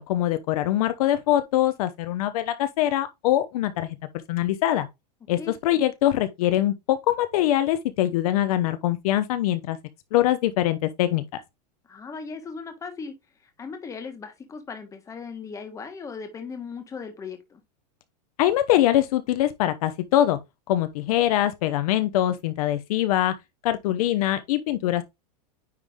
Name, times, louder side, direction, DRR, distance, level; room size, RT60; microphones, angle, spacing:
voice 1, 0.0-4.0 4.3-4.9 5.3-9.8 10.1-11.4 18.4-20.4 20.7-23.3 23.6-25.0, left 13 dB, 60° left, 0.8 m, -23 dB
voice 2, 11.9-13.1 13.4-17.6, left 5 dB, 15° left, 1.4 m, -38 dB
9.6 x 3.3 x 3.6 m
supercardioid pair, 150°, 21 cm